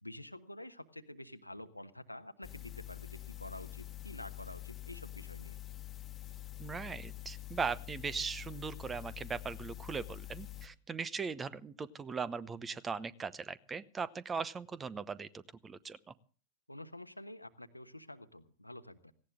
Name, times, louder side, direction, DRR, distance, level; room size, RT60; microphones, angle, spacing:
voice 1, 0.0-5.6 16.7-19.1, left 1 dB, 85° left, 9 dB, 1.2 m, -48 dB
sound 1, 2.4-10.7, left 15 dB, 25° left, 1.6 m, -46 dB
voice 2, 6.6-16.0, right 5 dB, 20° right, 19 dB, 0.9 m, -39 dB
18.0 x 17.0 x 3.6 m, 0.40 s
figure-of-eight pair, 90°, 0 cm